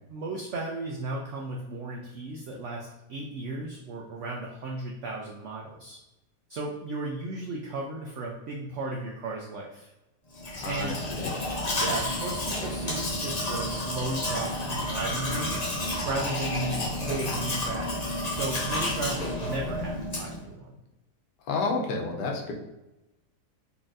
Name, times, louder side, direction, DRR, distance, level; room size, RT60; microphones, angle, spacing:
voice 1, 0.1-6.0 6.5-9.9 10.6-11.0 11.8-20.8, right 2 dB, 80° right, -1 dB, 0.6 m, -35 dB
Domestic sounds home sounds, 10.3-20.4, left 1 dB, 40° left, 0.5 m, -31 dB
voice 2, 10.6-11.3 21.5-22.5, left 3 dB, 85° left, 1 dB, 1.3 m, -30 dB
4.0 x 3.3 x 2.5 m, 0.98 s
omnidirectional pair, 1.8 m